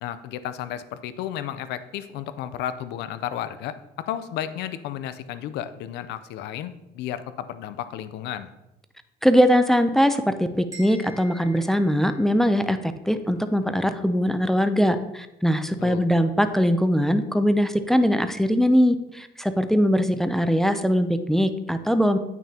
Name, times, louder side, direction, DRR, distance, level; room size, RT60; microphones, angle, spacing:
voice 1, 0.0-3.7 4.1-8.5 15.8-16.0, left 11 dB, 85° left, 13 dB, 0.5 m, -33 dB
voice 2, 9.2-22.2, equal, ahead, 9 dB, 0.4 m, -21 dB
sound 1, 10.7-12.7, equal, 20° right, 2.6 m, -46 dB
8.9 x 6.0 x 2.8 m, 0.92 s
cardioid pair, 110°, 17 cm